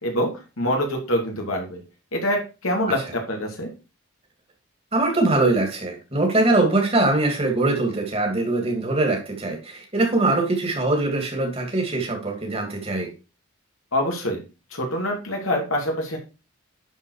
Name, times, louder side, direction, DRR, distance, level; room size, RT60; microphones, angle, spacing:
voice 1, 0.0-1.8 2.1-3.7 13.9-14.4 14.7-16.2, equal, 85° left, 1 dB, 2.7 m, -25 dB
voice 2, 4.9-13.1, right 2 dB, 30° right, 2 dB, 2.6 m, -22 dB
11.0 x 4.5 x 4.8 m, 0.31 s
head